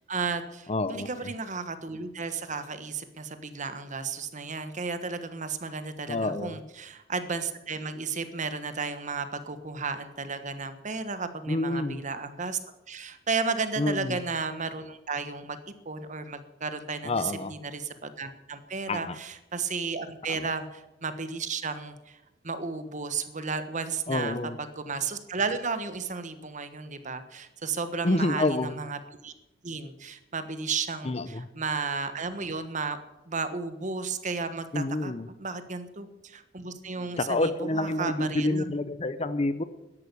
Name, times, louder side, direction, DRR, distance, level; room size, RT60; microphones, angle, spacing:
voice 1, 0.1-12.6 12.9-15.6 15.8-22.2 22.4-29.3 29.6-33.0 33.3-35.1 35.4-38.8, right 4 dB, 40° right, 10 dB, 1.3 m, -33 dB
voice 2, 0.7-1.1 6.1-6.6 11.5-12.0 13.8-14.2 17.0-17.5 18.9-19.2 20.3-20.5 24.1-24.6 28.0-28.7 31.0-31.5 34.7-35.3 37.2-39.6, left 2 dB, 35° left, 13 dB, 0.7 m, -28 dB
13.0 x 11.0 x 6.9 m, 0.95 s
head